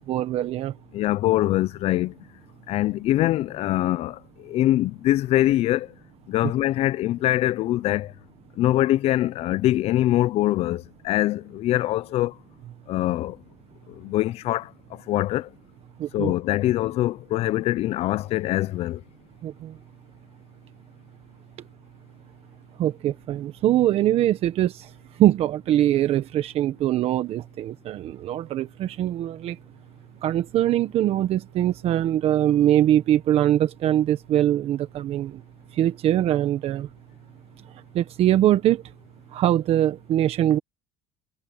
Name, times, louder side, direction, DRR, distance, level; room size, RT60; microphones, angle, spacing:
voice 1, 0.1-0.8 16.0-16.3 19.4-19.8 22.8-24.9 25.2-29.6 30.2-35.4 35.7-36.9 37.9-38.8 39.3-40.6, right 12 dB, 50° right, 1.3 m, -22 dB
voice 2, 0.9-2.1 2.7-5.9 6.3-8.1 8.6-12.4 12.9-13.4 13.9-15.5 16.1-19.0, left 15 dB, 50° left, 0.7 m, -23 dB
supercardioid pair, 115°, 13 cm